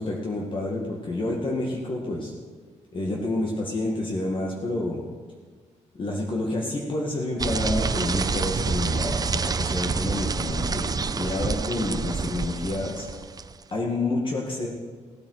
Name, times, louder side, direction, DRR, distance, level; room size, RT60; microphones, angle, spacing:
voice 1, 0.0-2.3 2.9-5.0 6.0-13.1 13.7-14.7, left 2 dB, 40° left, -2 dB, 1.9 m, -29 dB
sound 1, 7.4-13.6, right 5 dB, 30° right, 0.6 m, -28 dB
16.0 x 8.7 x 6.5 m, 1.5 s
cardioid pair, 110°, 13 cm